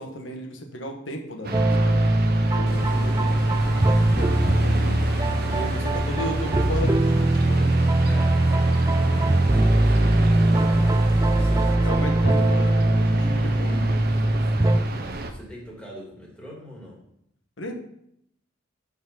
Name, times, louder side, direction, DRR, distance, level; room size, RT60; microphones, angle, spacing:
voice 1, 0.0-5.0 5.5-7.7 11.8-14.3 17.6-17.7, equal, 75° left, 3 dB, 1.3 m, -35 dB
sound 1, 1.4-15.3, right 2 dB, 50° right, 0.8 m, -33 dB
sound 2, 1.5-14.8, right 1 dB, 15° right, 0.4 m, -21 dB
sound 3, 2.7-11.7, left 2 dB, 55° left, 1.0 m, -37 dB
voice 2, 8.1-12.0 13.0-17.0, equal, 5° left, -4 dB, 2.3 m, -42 dB
8.1 x 4.9 x 5.6 m, 0.74 s
head